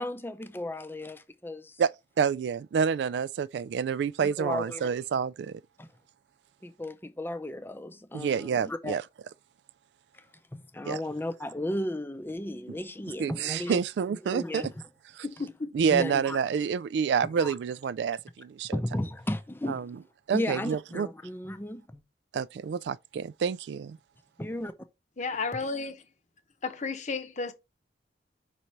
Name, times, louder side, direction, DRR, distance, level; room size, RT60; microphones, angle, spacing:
voice 1, 0.0-1.8 4.2-4.9 5.8-5.9 6.6-9.0 10.5-13.8 14.2-14.7 15.9-16.4 17.4-17.5 18.7-19.9 20.3-22.0 24.4-24.7, left 1 dB, 10° left, 0.6 m, -34 dB
voice 2, 2.2-5.6 8.1-9.0 10.9-11.0 13.2-14.7 15.2-15.3 15.7-18.8 19.7-20.0 20.3-21.1 22.3-24.0, right 6 dB, 70° right, 0.3 m, -28 dB
voice 3, 15.2-15.7 25.2-26.0 26.6-27.5, left 4 dB, 40° left, 0.9 m, -33 dB
5.1 x 4.2 x 4.5 m
head